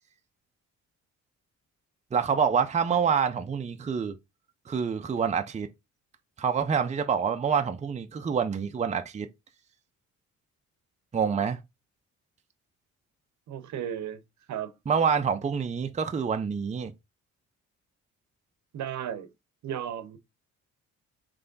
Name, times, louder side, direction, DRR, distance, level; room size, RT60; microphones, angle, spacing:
voice 1, 2.1-4.1 4.7-5.7 6.4-9.3 11.1-11.6 14.9-16.9, right 6 dB, 25° right, 0.5 m, -27 dB
voice 2, 13.5-14.2 14.5-14.7 18.7-19.3 19.6-20.2, right 9 dB, 70° right, 0.8 m, -34 dB
3.4 x 3.4 x 3.9 m
cardioid pair, 90°, 30 cm